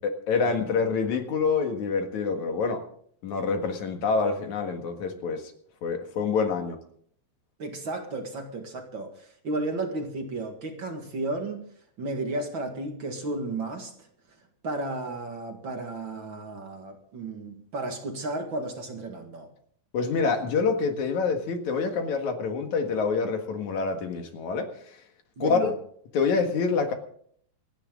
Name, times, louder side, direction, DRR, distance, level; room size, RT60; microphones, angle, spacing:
voice 1, 0.0-2.8 3.2-5.5 5.8-6.8 19.9-25.0 25.4-25.7 26.1-26.9, left 5 dB, 60° left, 5 dB, 2.8 m, -26 dB
voice 2, 7.6-11.7 12.0-14.1 14.6-19.5 25.4-25.7, right 2 dB, 40° right, 4 dB, 1.9 m, -33 dB
27.0 x 10.5 x 3.8 m, 0.63 s
omnidirectional pair, 4.2 m